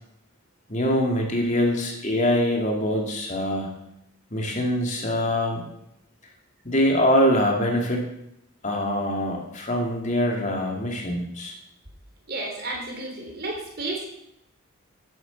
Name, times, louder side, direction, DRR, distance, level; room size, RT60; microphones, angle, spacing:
voice 1, 0.7-3.7 4.3-5.7 6.6-8.1 8.6-11.5, equal, 35° left, 1 dB, 2.4 m, -24 dB
voice 2, 12.3-14.1, right 2 dB, 45° right, 0 dB, 3.6 m, -32 dB
11.0 x 9.3 x 7.1 m, 0.78 s
head